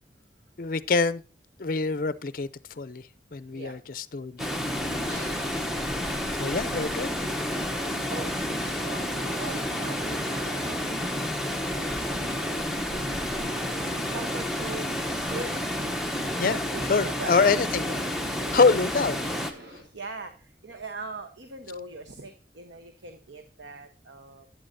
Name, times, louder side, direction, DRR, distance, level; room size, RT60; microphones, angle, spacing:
voice 1, 0.6-1.2 1.6-2.5 2.8-3.1 3.3-4.5 4.8-5.3 6.4-7.2 16.4-16.6 16.9-17.9 18.5-19.2, left 4 dB, 50° left, 0.5 m, -25 dB
Water, 4.4-19.5, left 1 dB, ahead, 0.8 m, -30 dB
sound 1, 5.1-19.8, equal, 60° right, 3.3 m, -46 dB
voice 2, 8.1-11.0 11.8-15.6 16.7-17.5 19.5-24.5, right 3 dB, 80° right, 1.0 m, -42 dB
11.0 x 8.7 x 2.6 m
head